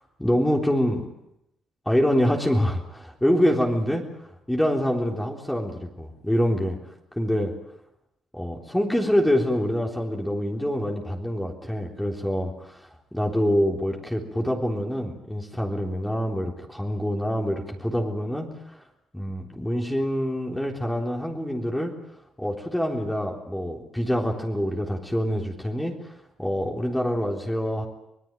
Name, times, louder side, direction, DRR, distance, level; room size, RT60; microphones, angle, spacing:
voice 1, 0.2-1.1 1.9-4.0 4.5-6.8 7.1-7.5 8.3-12.5 13.1-18.5 19.1-21.9 22.4-26.0 26.4-27.9, equal, 5° left, 0 dB, 3.7 m, -25 dB
25.5 x 19.0 x 9.2 m, 0.84 s
cardioid pair, 90°, 0 cm